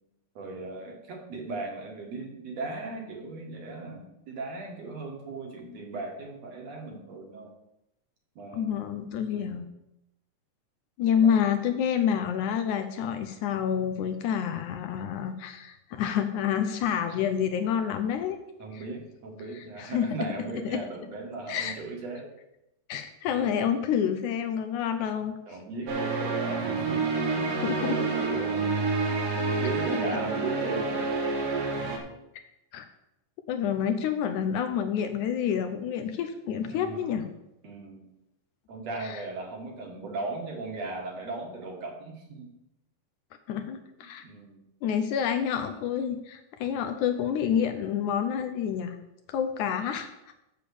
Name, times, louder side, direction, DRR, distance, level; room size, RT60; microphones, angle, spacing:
voice 1, 0.4-7.5 8.4-8.9 9.3-9.7 11.2-11.4 18.6-22.3 23.3-23.6 25.5-28.7 29.5-31.1 36.7-37.2 37.6-38.1 38.7-42.5 44.2-44.6, right 3 dB, 55° right, 1 dB, 2.5 m, -37 dB
voice 2, 8.5-9.6 11.0-18.4 18.7-18.8 19.5-20.1 20.7-20.8 21.5-21.7 22.9-25.3 27.6-28.0 32.7-32.9 33.5-37.3 39.0-39.2 43.5-44.2 44.8-49.0 49.3-50.1, left 8 dB, 75° left, 8 dB, 2.0 m, -28 dB
sound 1, 25.9-32.0, right 3 dB, 80° right, 3.2 m, -28 dB
8.3 x 7.2 x 6.9 m, 0.88 s
omnidirectional pair, 3.8 m